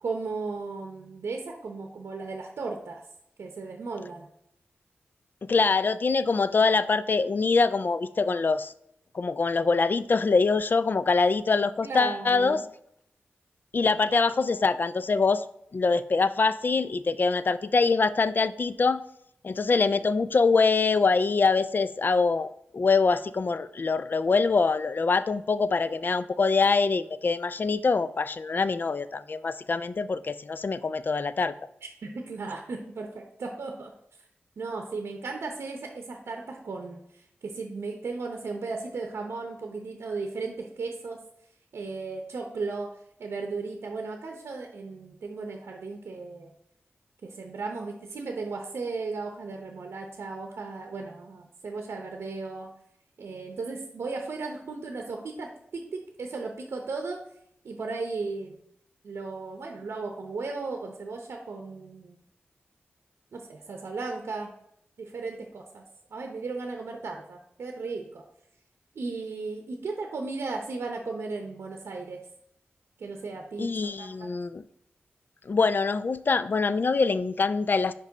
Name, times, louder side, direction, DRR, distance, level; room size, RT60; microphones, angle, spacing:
voice 1, 0.0-3.0 3.4-4.3 11.8-12.6 32.0-33.9 34.6-41.2 41.7-42.9 43.2-46.5 47.2-52.7 53.2-57.2 57.6-58.6 59.0-62.2 63.3-64.5 65.0-65.8 66.1-68.2 68.9-72.2 73.0-74.3, right 3 dB, 80° right, 3 dB, 0.7 m, -35 dB
voice 2, 5.4-8.7 9.1-12.6 13.7-15.4 15.7-19.0 19.4-31.5 73.6-74.6 75.5-77.9, left 4 dB, 50° left, 14 dB, 0.4 m, -24 dB
5.3 x 5.2 x 3.9 m, 0.73 s
cardioid pair, 65°, 4 cm